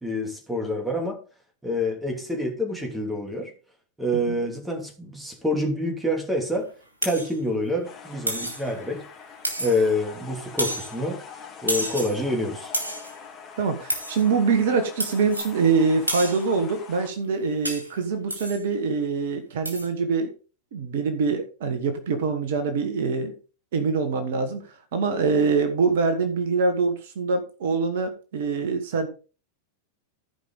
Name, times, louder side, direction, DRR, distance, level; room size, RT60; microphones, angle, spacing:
voice 1, 0.0-1.2 1.6-3.5 4.0-6.7 7.0-9.0 9.6-11.2 11.6-12.7, left 1 dB, 5° right, 2.6 m, -27 dB
sound 1, 7.0-7.3 8.3-8.7 9.4-10.0 10.6-10.9 11.7-12.2 12.7-13.1 13.9-14.2 15.0-15.5 16.1-16.5 17.6-17.9 18.3-18.6 19.6-19.9, right 1 dB, 80° right, 3.0 m, -30 dB
sound 2, 7.8-17.1, left 6 dB, 20° left, 2.7 m, -43 dB
voice 2, 13.6-20.3 20.7-23.3 23.7-24.7 24.9-29.1, right 4 dB, 55° right, 1.4 m, -24 dB
15.0 x 5.2 x 3.9 m
figure-of-eight pair, 90°, 0 cm